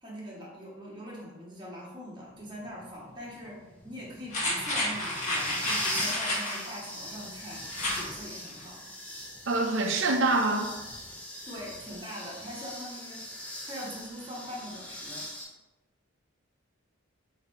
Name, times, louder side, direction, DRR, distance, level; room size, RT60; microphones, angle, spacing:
voice 1, 0.0-7.7 7.9-8.9 11.5-13.2 13.7-15.3, equal, 20° right, -5 dB, 1.1 m, -42 dB
sound 1, 2.3-15.4, left 1 dB, 5° left, 0.5 m, -41 dB
sound 2, 4.3-6.7 7.7-8.1 8.5-8.6, left 1 dB, 35° left, 1.1 m, -30 dB
voice 2, 9.5-10.7, right 2 dB, 60° right, 4 dB, 0.6 m, -25 dB
3.7 x 2.7 x 4.5 m, 1.1 s
head